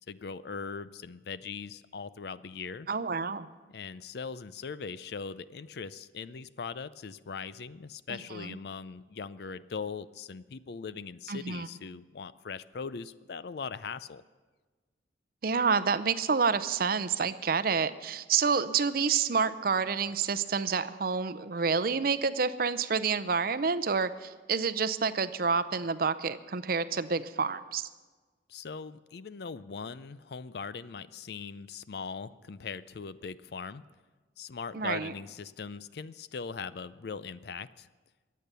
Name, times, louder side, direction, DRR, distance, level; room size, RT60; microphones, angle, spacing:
voice 1, 0.1-2.9 3.7-14.2 28.5-33.8 34.4-37.9, left 5 dB, 60° left, 16 dB, 0.4 m, -40 dB
voice 2, 2.9-3.5 8.1-8.6 11.3-11.7 15.4-27.9 34.7-35.1, right 5 dB, 50° right, 14 dB, 0.6 m, -28 dB
23.0 x 8.5 x 6.8 m, 1.3 s
head